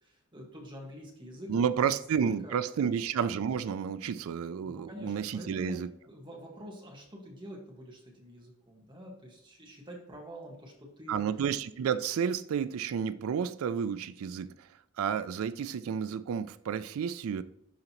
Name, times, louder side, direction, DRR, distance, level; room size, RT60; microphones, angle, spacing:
voice 1, 0.0-1.9 2.2-2.9 4.6-5.7 6.1-11.2, equal, 25° right, 1.7 m, -46 dB
voice 2, 1.5-5.9 11.1-14.7 15.0-17.4, right 7 dB, 80° right, 0.3 m, -31 dB
11.5 x 3.9 x 3.0 m
head